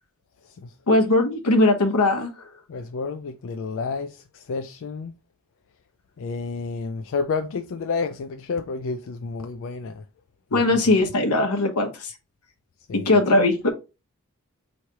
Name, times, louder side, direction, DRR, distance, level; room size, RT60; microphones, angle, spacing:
voice 1, 0.9-2.3 10.5-12.1 12.9-13.7, left 2 dB, 90° left, 1.0 m, -20 dB
voice 2, 2.7-5.1 6.2-10.0 10.5-10.6 12.9-13.1, left 4 dB, 60° left, 0.4 m, -30 dB
4.6 x 3.2 x 2.8 m
head